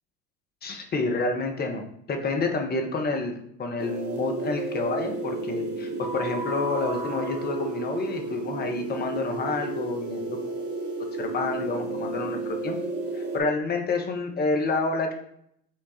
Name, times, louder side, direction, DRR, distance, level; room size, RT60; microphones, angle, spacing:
voice 1, 0.6-10.6 11.2-12.8 13.1-15.1, left 3 dB, 20° left, 4 dB, 0.6 m, -29 dB
sound 1, 3.8-13.4, right 2 dB, 40° right, 0.9 m, -32 dB
4.5 x 2.3 x 4.1 m, 0.72 s
hypercardioid pair, 80°, 50 cm